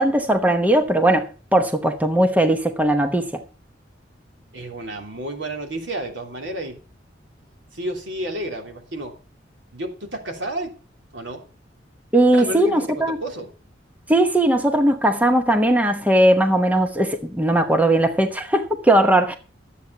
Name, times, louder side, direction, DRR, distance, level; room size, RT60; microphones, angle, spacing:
voice 1, 0.0-3.4 12.1-13.2 14.1-19.4, right 1 dB, 10° right, 1.0 m, -18 dB
voice 2, 4.5-6.8 7.7-9.1 9.7-10.7 11.1-11.4 12.3-13.5, right 1 dB, 75° right, 3.2 m, -31 dB
12.5 x 8.3 x 5.8 m
head